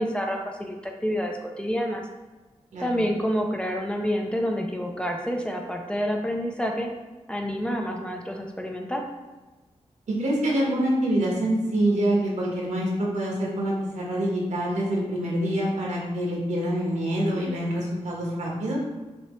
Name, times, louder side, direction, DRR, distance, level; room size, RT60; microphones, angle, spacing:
voice 1, 0.0-2.0 2.8-6.9 7.3-9.1, equal, 10° left, 1 dB, 0.5 m, -28 dB
voice 2, 10.2-18.8, right 1 dB, 80° right, -3 dB, 1.3 m, -26 dB
5.8 x 2.8 x 3.2 m, 1.2 s
wide cardioid pair, 135°, 12 cm